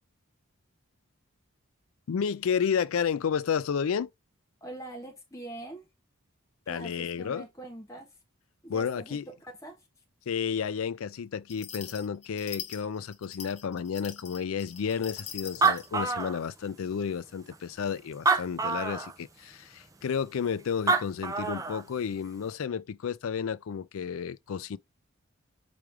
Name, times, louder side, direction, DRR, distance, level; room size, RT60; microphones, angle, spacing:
voice 1, 2.1-4.1 6.7-7.5 8.7-9.2 10.3-24.8, left 7 dB, 75° left, 0.4 m, -31 dB
voice 2, 4.6-5.9 6.7-8.1 8.6-9.8, right 2 dB, 15° left, 1.2 m, -43 dB
sound 1, 11.5-15.9, left 8 dB, 30° left, 0.8 m, -43 dB
Animal, 15.2-15.3 15.4-16.9 17.5-17.6 18.1-19.1 20.6-20.7 20.9-21.8, right 4 dB, 15° right, 0.5 m, -26 dB
4.8 x 3.2 x 3.3 m
head